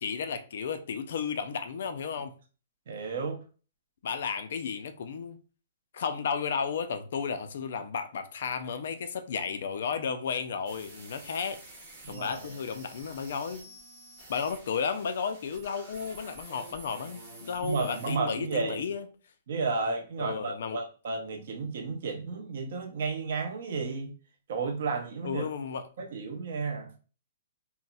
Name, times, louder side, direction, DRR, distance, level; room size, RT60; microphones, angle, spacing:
voice 1, 0.0-2.3 4.0-5.4 5.9-11.6 12.1-13.7 14.3-19.1 20.2-20.8 25.2-25.8, left 6 dB, 55° left, 0.3 m, -33 dB
voice 2, 2.9-3.4 12.0-12.5 17.6-18.8 19.5-24.1 24.5-25.5 26.0-27.0, right 4 dB, 50° right, 0.7 m, -32 dB
sound 1, 10.7-18.2, right 2 dB, 15° right, 1.0 m, -49 dB
3.9 x 2.0 x 2.2 m
hypercardioid pair, 175°, 0 cm